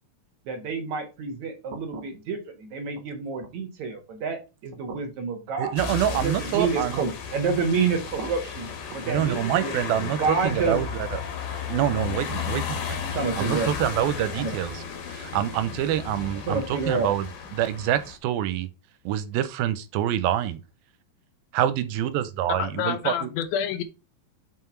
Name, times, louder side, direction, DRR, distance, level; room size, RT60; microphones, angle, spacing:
voice 1, 0.5-5.7 6.1-9.7 10.2-10.8 13.0-13.7 14.4-14.5 16.5-17.1, right 4 dB, 60° right, 2.4 m, -28 dB
voice 2, 5.6-7.0 9.0-11.2 11.7-13.0 13.4-14.8 15.1-17.3 17.5-18.7 19.1-20.6 21.5-23.3, right 11 dB, 85° right, 2.5 m, -26 dB
sound 1, 5.8-18.2, left 7 dB, 65° left, 2.7 m, -34 dB
voice 3, 22.6-23.8, left 9 dB, 80° left, 2.6 m, -28 dB
5.7 x 5.7 x 4.5 m
omnidirectional pair, 4.3 m